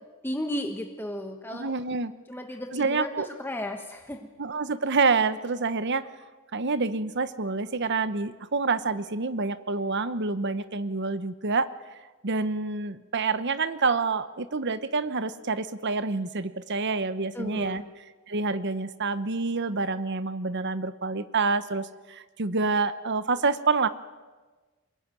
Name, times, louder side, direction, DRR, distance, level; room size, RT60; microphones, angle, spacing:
voice 1, 0.2-1.7 2.3-4.2 17.3-17.9, left 1 dB, 10° left, 4 dB, 1.3 m, -34 dB
voice 2, 1.5-2.1 2.7-3.3 4.4-6.0 6.5-11.7 12.2-17.8 18.3-23.9, right 4 dB, 55° right, 13 dB, 1.0 m, -27 dB
23.0 x 21.5 x 9.2 m, 1.3 s
head